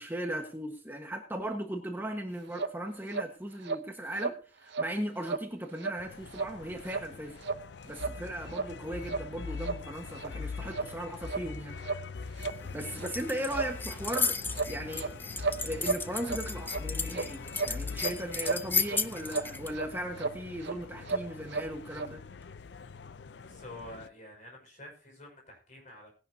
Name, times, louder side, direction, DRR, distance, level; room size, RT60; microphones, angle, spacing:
voice 1, 0.0-7.4 7.8-11.8 12.4-15.1 15.6-22.2, right 1 dB, 10° right, 3 dB, 1.3 m, -37 dB
sound 1, 2.6-2.7 3.1-3.3 3.6-3.8 4.2-4.4 4.7-4.9 5.2-5.5 5.8-6.0 6.3-6.5 6.9-7.0 7.4-7.6 8.0-8.1 8.5-8.7 9.1-9.2 9.6-9.8 10.2-10.3 10.7-10.9 11.3-11.4 11.8-12.0 12.4-12.5 13.0-13.1 13.5-13.7 14.1-14.2 14.5-15.1 15.4-16.4 16.7-16.8 17.1-17.3 17.5-18.1 18.4-19.0 19.3-19.5 19.7-19.9 20.2-20.4 20.6-20.8 21.1-21.7 21.9-22.1, right 4 dB, 75° right, 0.7 m, -33 dB
sound 2, 6.0-24.1, left 5 dB, 75° left, 0.5 m, -43 dB
sound 3, 12.4-19.7, left 4 dB, 10° left, 0.5 m, -35 dB
voice 2, 23.4-26.1, left 1 dB, 45° left, 1 dB, 5.5 m, -48 dB
19.5 x 10.5 x 2.8 m, 0.35 s
head